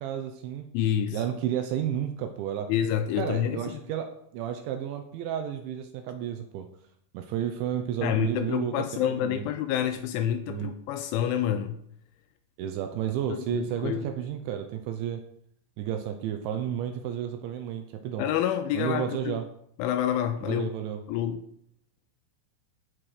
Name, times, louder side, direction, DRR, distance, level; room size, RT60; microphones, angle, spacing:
voice 1, 0.0-0.7 1.1-2.7 3.2-6.7 7.1-9.4 10.5-10.7 12.6-15.2 15.8-18.3 18.7-19.5 20.4-21.0, right 10 dB, 80° right, 6 dB, 2.8 m, -32 dB
voice 2, 0.7-1.2 2.7-3.8 8.0-11.8 13.3-14.1 18.2-19.4 19.8-20.7 21.1-21.4, left 10 dB, 85° left, 8 dB, 2.9 m, -28 dB
15.5 x 5.9 x 5.0 m, 0.68 s
omnidirectional pair, 6.0 m